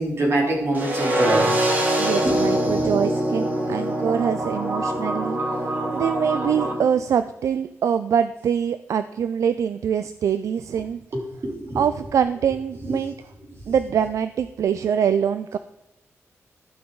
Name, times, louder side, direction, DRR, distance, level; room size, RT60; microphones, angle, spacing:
voice 1, 0.0-1.5 2.2-2.5 11.1-11.8, right 1 dB, 50° right, -2 dB, 3.5 m, -24 dB
sound 1, 0.7-6.7, right 1 dB, 35° right, 2.2 m, -23 dB
voice 2, 2.0-5.4 5.9-11.0 11.8-13.1 13.7-15.6, right 8 dB, 75° right, 12 dB, 0.4 m, -24 dB
14.0 x 5.8 x 3.9 m, 0.95 s
wide cardioid pair, 135°, 5 cm